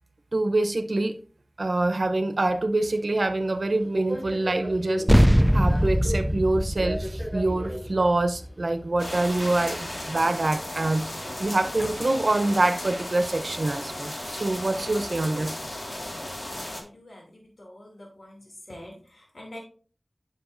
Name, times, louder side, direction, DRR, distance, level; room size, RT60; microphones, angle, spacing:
voice 1, 0.3-1.2 1.6-15.6, right 2 dB, 70° right, 0.7 m, -25 dB
Subway metro underground, 2.8-12.6, equal, 25° left, 4.0 m, -39 dB
sound 1, 5.1-9.9, equal, 5° right, 0.3 m, -23 dB
sound 2, 9.0-16.8, left 1 dB, 50° left, 1.9 m, -35 dB
voice 2, 16.5-18.4 18.7-19.6, left 1 dB, 75° left, 2.6 m, -46 dB
9.7 x 5.9 x 2.6 m
wide cardioid pair, 45°, 0 cm